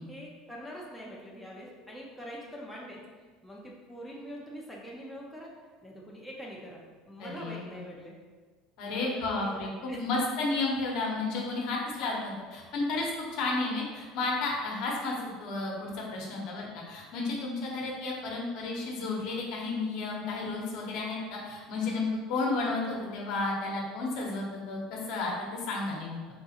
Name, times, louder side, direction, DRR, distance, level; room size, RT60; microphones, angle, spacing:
voice 1, 0.0-3.0 3.4-5.5 5.8-8.2 8.8-9.6 9.9-10.2, equal, ahead, -5 dB, 0.5 m, -44 dB
voice 2, 7.2-7.6 8.8-26.2, left 3 dB, 60° left, -2 dB, 0.8 m, -32 dB
3.6 x 3.0 x 2.8 m, 1.4 s
cardioid pair, 145°, 0 cm